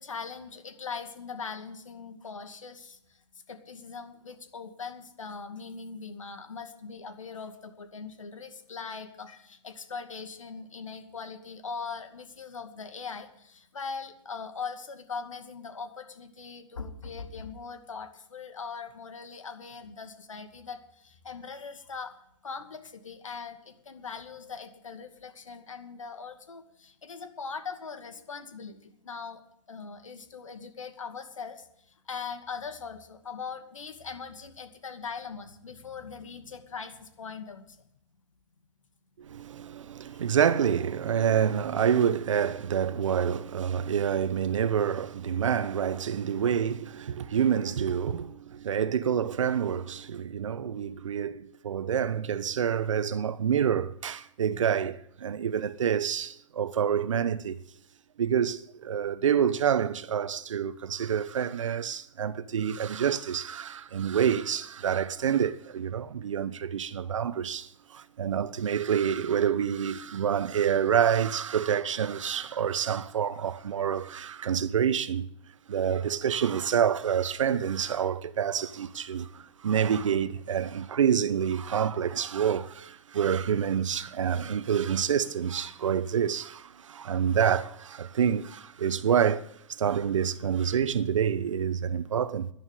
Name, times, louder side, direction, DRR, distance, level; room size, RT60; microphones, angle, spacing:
voice 1, 0.0-22.1 22.4-29.4 29.7-37.8 40.1-40.2, left 5 dB, 85° left, 2.3 m, -41 dB
voice 2, 39.2-57.6 58.2-75.3 75.7-92.5, right 8 dB, 75° right, 0.9 m, -27 dB
11.5 x 11.0 x 8.3 m
hypercardioid pair, 130°, 16 cm